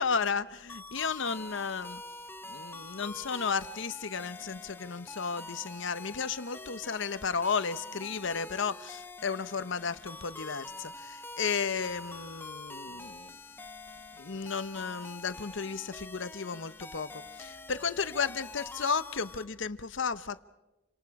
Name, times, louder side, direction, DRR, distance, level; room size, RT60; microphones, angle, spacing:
voice 1, 0.0-2.0 2.5-13.4 14.2-20.4, left 5 dB, 60° left, 0.9 m, -33 dB
sound 1, 0.7-19.4, left 2 dB, 10° left, 0.8 m, -46 dB
29.5 x 26.0 x 4.8 m
head